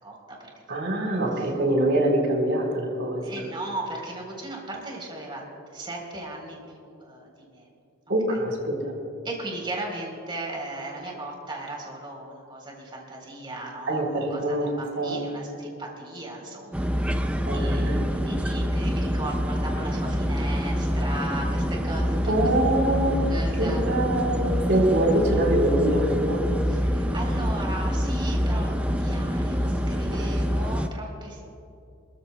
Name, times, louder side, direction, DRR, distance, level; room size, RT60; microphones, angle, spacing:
voice 1, 0.0-0.8 1.4-1.5 3.2-7.7 8.3-8.4 9.2-22.5 23.3-23.9 26.7-31.5, right 1 dB, 25° right, -1 dB, 3.6 m, -37 dB
voice 2, 0.7-3.5 8.1-8.9 13.9-14.7 14.9-15.3 17.4-18.0 22.3-23.2 23.6-26.5 30.1-30.3, right 1 dB, 60° right, -1 dB, 3.8 m, -24 dB
sound 1, 16.7-30.9, equal, 5° right, 0.5 m, -26 dB
27.5 x 14.0 x 2.2 m, 2.6 s
head